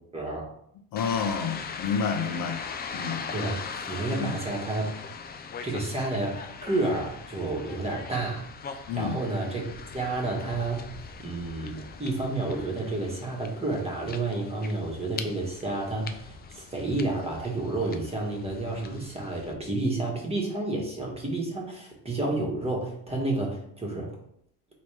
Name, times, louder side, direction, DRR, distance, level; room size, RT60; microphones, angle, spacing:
voice 1, 0.1-0.5 3.3-4.9 5.6-8.4 8.9-9.6 9.9-10.9 11.2-24.1, right 2 dB, 15° right, 1.4 m, -30 dB
voice 2, 0.9-2.6 2.9-3.2 4.1-4.3 8.9-9.2, left 6 dB, 55° left, 0.9 m, -29 dB
sound 1, 1.0-19.5, left 5 dB, 25° left, 0.4 m, -41 dB
4.0 x 3.2 x 3.3 m
supercardioid pair, 90°, 40 cm